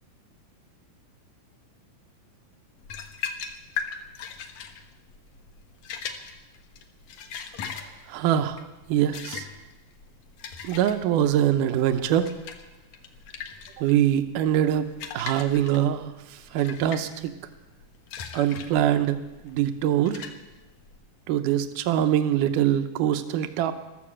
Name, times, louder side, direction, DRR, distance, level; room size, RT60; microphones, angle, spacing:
sound 1, 2.8-21.0, left 7 dB, 65° left, 2.2 m, -39 dB
voice 1, 8.1-9.5 10.6-12.3 13.8-14.9 15.1-17.3 18.3-19.2 19.4-20.2 21.3-23.7, right 11 dB, 75° right, 9 dB, 2.3 m, -23 dB
13.5 x 13.5 x 7.5 m, 1.1 s
omnidirectional pair, 3.9 m